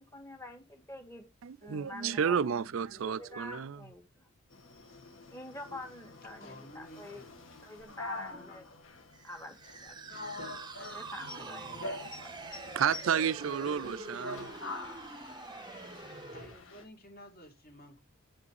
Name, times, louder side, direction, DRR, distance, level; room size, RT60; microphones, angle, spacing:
voice 1, 0.0-1.3 1.6-2.5 2.8-4.3 5.3-7.2 7.6-8.6 9.2-9.6 9.8-10.3 10.9-12.5, left 1 dB, 15° left, 2.0 m, -47 dB
voice 2, 1.4-3.7 12.8-14.4, right 7 dB, 75° right, 0.4 m, -31 dB
sound 1, 4.5-16.8, left 2 dB, 70° left, 1.7 m, -46 dB
voice 3, 6.4-7.6 8.3-8.6 11.4-11.8 13.6-14.7 16.3-18.0, equal, 45° left, 2.6 m, -52 dB
sound 2, 9.1-16.6, right 3 dB, 20° right, 0.7 m, -45 dB
8.9 x 5.0 x 4.8 m
head